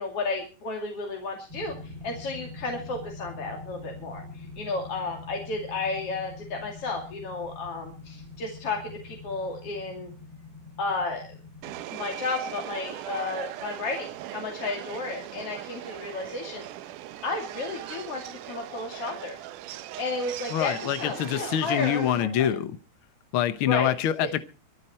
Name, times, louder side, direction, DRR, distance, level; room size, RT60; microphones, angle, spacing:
voice 1, 0.0-10.1 10.8-11.2 11.9-16.7 17.2-19.4 20.0-22.5 23.7-23.9 24.2-24.3, left 3 dB, 50° left, 3.5 m, -33 dB
sound 1, 1.5-11.8, left 3 dB, 35° right, 2.3 m, -44 dB
Subway metro underground, 11.6-22.2, right 14 dB, 85° right, 2.4 m, -39 dB
voice 2, 20.5-22.7 23.3-24.4, left 11 dB, 70° left, 1.2 m, -25 dB
24.5 x 9.9 x 4.4 m
omnidirectional pair, 3.6 m